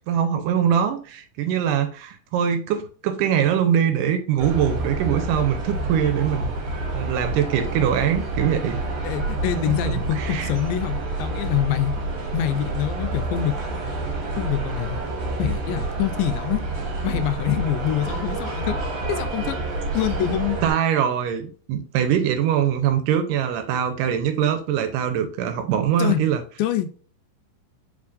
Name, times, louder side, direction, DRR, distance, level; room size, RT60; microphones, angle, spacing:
voice 1, 0.1-6.5 6.9-8.8 9.7-10.5 20.6-26.4, right 9 dB, 80° right, 2.0 m, -23 dB
sound 1, 4.4-20.7, right 2 dB, 60° right, 2.0 m, -28 dB
voice 2, 9.0-11.9 12.3-13.5 14.4-15.0 15.4-16.6 17.0-18.8 19.1-19.6 19.9-20.6 26.0-26.2 26.6-26.9, left 11 dB, 85° left, 2.3 m, -25 dB
5.0 x 3.5 x 2.4 m
omnidirectional pair, 4.0 m